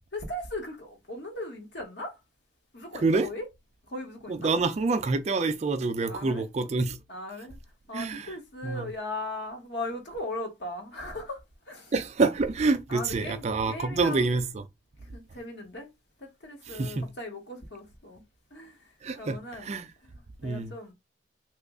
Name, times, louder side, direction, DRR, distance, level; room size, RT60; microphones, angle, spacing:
voice 1, 0.1-2.2 2.7-3.5 3.9-4.5 6.0-6.4 7.1-7.6 7.9-11.4 11.7-11.9 12.9-14.3 15.1-15.9 16.2-18.2 18.5-18.8 19.2-19.7 20.0-20.1 20.4-20.9, left 1 dB, 60° left, 1.1 m, -38 dB
voice 2, 2.9-3.3 4.3-7.0 7.9-8.3 8.6-8.9 11.9-14.6 16.7-17.1 19.0-19.9 20.4-20.7, right 3 dB, 35° right, 0.3 m, -27 dB
3.0 x 2.4 x 3.6 m
head